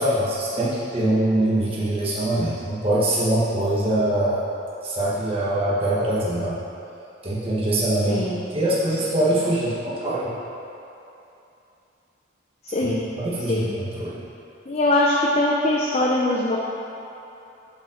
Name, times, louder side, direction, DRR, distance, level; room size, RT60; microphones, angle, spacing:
voice 1, 0.0-4.4 4.8-6.6 7.2-8.2 8.5-10.3 12.8-14.2, right 1 dB, 30° right, -9 dB, 1.4 m, -23 dB
voice 2, 8.1-8.5 12.6-13.1 13.5-13.7 14.7-16.6, left 1 dB, 35° left, -3 dB, 0.6 m, -22 dB
7.2 x 5.3 x 6.3 m, 2.9 s
head